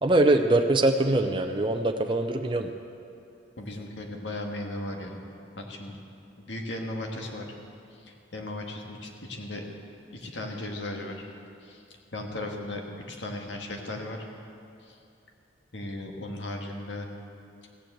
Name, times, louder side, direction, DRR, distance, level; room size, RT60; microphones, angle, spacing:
voice 1, 0.0-2.7, right 2 dB, 25° right, 5 dB, 0.5 m, -23 dB
voice 2, 3.6-5.2 5.6-6.0 6.4-7.5 8.0-9.6 10.1-11.2 11.6-11.8 12.1-12.8 13.1-14.3 14.8-15.0 15.7-17.1, left 1 dB, 85° left, 2 dB, 1.6 m, -36 dB
15.5 x 7.4 x 7.9 m, 2.6 s
head